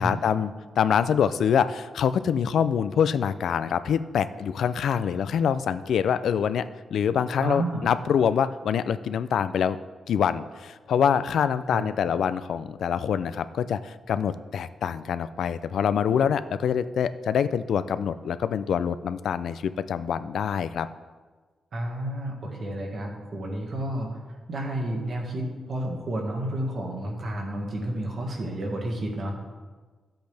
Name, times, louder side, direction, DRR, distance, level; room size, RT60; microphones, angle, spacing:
voice 1, 0.0-9.8 10.1-19.6 19.9-20.9, left 8 dB, 75° left, 13 dB, 0.4 m, -25 dB
voice 2, 7.4-7.9 11.7-11.8 21.7-24.2 24.5-29.4, right 1 dB, 45° right, 0 dB, 1.7 m, -31 dB
13.5 x 7.9 x 3.4 m, 1.4 s
wide cardioid pair, 175°, 0 cm